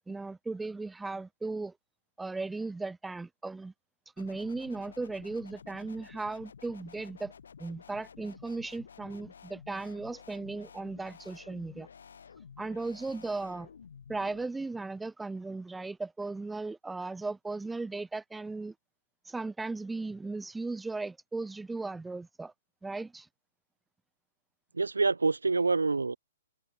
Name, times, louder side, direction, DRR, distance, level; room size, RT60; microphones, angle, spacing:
voice 1, 0.0-1.7 2.2-3.7 4.2-7.3 7.6-11.9 12.6-13.7 14.1-18.7 19.3-22.5 22.8-23.3, right 3 dB, 5° right, 0.7 m, -37 dB
sound 1, 4.2-14.5, left 6 dB, 75° left, 4.2 m, -52 dB
voice 2, 24.7-26.2, right 3 dB, 90° right, 0.3 m, -26 dB
hypercardioid pair, 125°, 0 cm